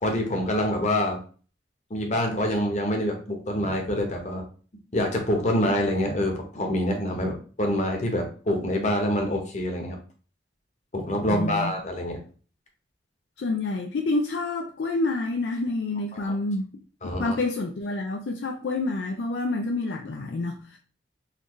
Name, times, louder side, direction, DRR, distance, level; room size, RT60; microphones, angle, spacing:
voice 1, 0.0-1.2 1.9-4.4 4.9-10.0 10.9-12.2 16.2-16.3 17.0-17.4, left 1 dB, 40° left, 0.9 m, -26 dB
voice 2, 11.3-11.7 13.4-16.7 17.0-20.8, left 2 dB, 65° left, 0.4 m, -28 dB
4.1 x 2.6 x 3.0 m
head